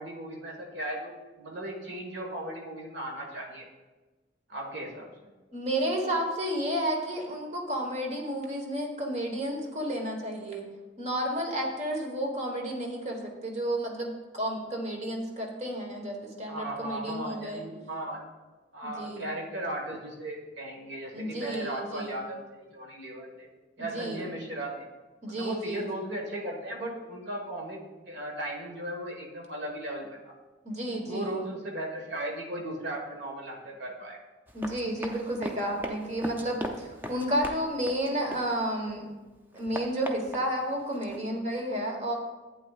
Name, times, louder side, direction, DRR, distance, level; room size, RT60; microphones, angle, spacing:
voice 1, 0.0-3.7 4.5-5.3 16.5-18.2 18.7-23.5 23.8-24.9 25.3-30.3 31.0-34.2, right 1 dB, 65° right, 0 dB, 1.6 m, -37 dB
voice 2, 5.5-10.6 11.0-17.7 18.8-19.3 21.1-22.2 23.8-24.3 25.2-25.9 30.6-31.4 34.5-39.1 39.5-42.2, right 1 dB, 35° right, 1 dB, 1.4 m, -32 dB
Run, 34.5-38.9 39.3-41.2, equal, 10° right, 0.5 m, -39 dB
11.5 x 8.4 x 2.4 m, 1.2 s
head